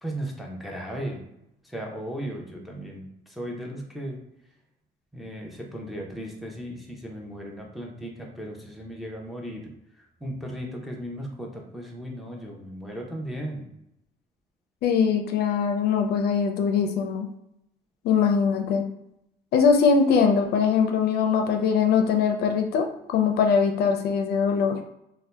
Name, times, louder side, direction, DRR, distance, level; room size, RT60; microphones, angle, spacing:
voice 1, 0.0-1.2 1.6-4.2 5.1-9.6 10.2-13.7, equal, ahead, -1 dB, 0.7 m, -36 dB
voice 2, 14.8-17.3 18.0-18.8 19.5-22.9 23.1-24.8, left 6 dB, 70° left, 4 dB, 0.4 m, -22 dB
2.7 x 2.1 x 3.3 m, 0.81 s
cardioid pair, 110°, 17 cm